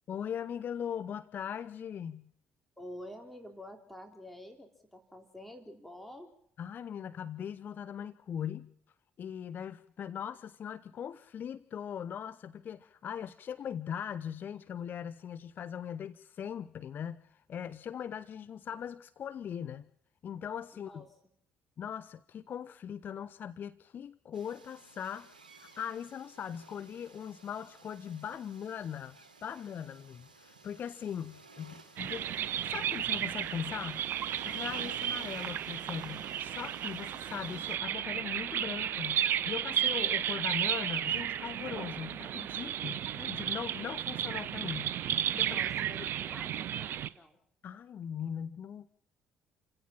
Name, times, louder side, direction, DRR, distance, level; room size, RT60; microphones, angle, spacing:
voice 1, 0.1-2.3 6.6-8.7 9.2-19.8 20.2-21.0 21.8-25.3 25.6-34.1 34.4-45.6 45.9-46.1 47.6-48.9, left 8 dB, 50° left, 0.8 m, -40 dB
voice 2, 2.8-6.3 20.7-21.1 45.4-47.4, left 1 dB, 5° left, 3.5 m, -48 dB
sound 1, 24.3-37.8, right 3 dB, 90° right, 1.5 m, -56 dB
sound 2, 32.0-47.1, right 10 dB, 55° right, 0.7 m, -33 dB
28.0 x 16.5 x 5.9 m
figure-of-eight pair, 50°, 4 cm